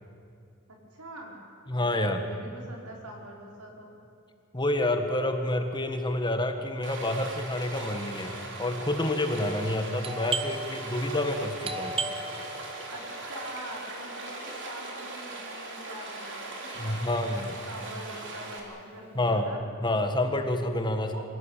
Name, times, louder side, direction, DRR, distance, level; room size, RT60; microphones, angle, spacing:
voice 1, 0.7-1.3 1.7-3.9 12.9-17.4 17.7-19.6 21.0-21.2, right 1 dB, 80° right, -1 dB, 5.3 m, -44 dB
voice 2, 1.7-2.2 4.5-11.9 16.8-17.5 19.1-19.5 19.8-21.2, left 1 dB, 20° left, 6 dB, 1.5 m, -28 dB
Stream, 6.8-18.6, right 2 dB, 55° right, 3.6 m, -40 dB
Doorbell, 10.0-15.5, right 3 dB, 25° right, 1.1 m, -37 dB
25.5 x 16.5 x 9.0 m, 2.5 s
head